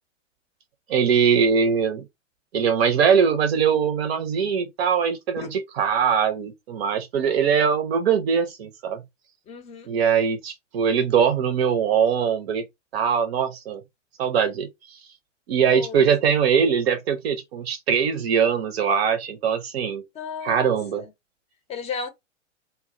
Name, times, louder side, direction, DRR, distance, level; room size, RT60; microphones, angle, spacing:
voice 1, 0.9-2.1 2.5-9.0 9.9-12.6 12.9-13.8 14.2-15.0 15.5-20.0 20.4-21.0, right 7 dB, 55° right, 0.6 m, -22 dB
voice 2, 9.5-9.9 15.7-16.1 20.1-21.1 21.7-22.1, left 5 dB, 15° left, 0.6 m, -35 dB
2.2 x 2.0 x 3.6 m
figure-of-eight pair, 105°, 38 cm